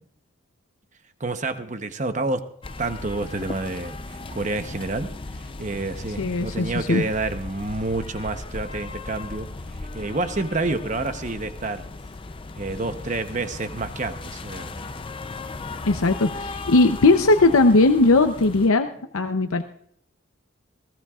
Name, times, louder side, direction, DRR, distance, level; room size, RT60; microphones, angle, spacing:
voice 1, 1.2-2.4 2.8-4.0 4.3-5.1 5.6-9.5 9.9-11.8 12.6-14.7, right 2 dB, 35° right, 9 dB, 0.9 m, -28 dB
sound 1, 2.6-18.7, left 3 dB, 25° left, 0.5 m, -37 dB
voice 2, 6.2-7.0 15.9-18.9 19.1-19.6, left 2 dB, 90° left, 7 dB, 0.7 m, -18 dB
19.5 x 15.5 x 2.4 m, 0.65 s
head